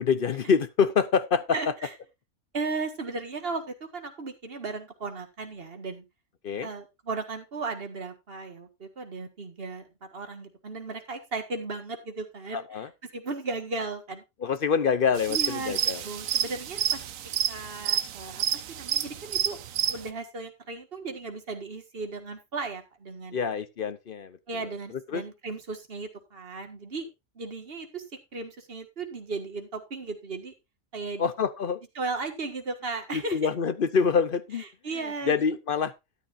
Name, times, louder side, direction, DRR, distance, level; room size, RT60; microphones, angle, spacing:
voice 1, 0.0-1.4 6.4-6.7 12.5-12.9 14.4-16.0 23.3-24.7 25.1-25.2 31.2-31.8 33.1-34.6 35.3-35.9, left 6 dB, 50° left, 0.7 m, -26 dB
voice 2, 1.5-1.9 2.5-6.0 6.6-14.2 15.3-17.0 17.5-19.6 19.9-23.4 24.5-27.1 27.4-28.0 28.3-30.5 30.9-31.3 32.0-33.4 34.6-35.4, right 3 dB, 40° right, 1.8 m, -36 dB
sound 1, 15.2-20.1, right 10 dB, 70° right, 1.1 m, -29 dB
13.0 x 10.0 x 2.5 m
omnidirectional pair, 1.5 m